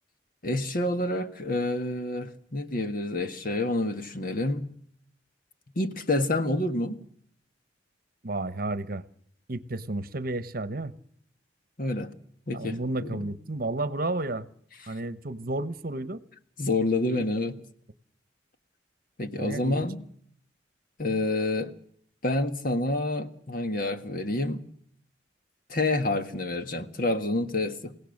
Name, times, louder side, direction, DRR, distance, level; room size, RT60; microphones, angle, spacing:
voice 1, 0.4-4.7 5.7-7.0 11.8-12.1 12.5-13.3 14.8-14.9 16.6-17.6 19.2-20.0 21.0-21.7 22.2-24.6 25.7-27.9, left 2 dB, 50° left, 8 dB, 1.6 m, -28 dB
voice 2, 8.2-9.0 9.5-10.9 12.5-14.5 14.9-16.2 17.1-17.2 19.4-19.8, right 2 dB, 50° right, 14 dB, 1.1 m, -32 dB
28.0 x 17.5 x 6.6 m, 0.65 s
head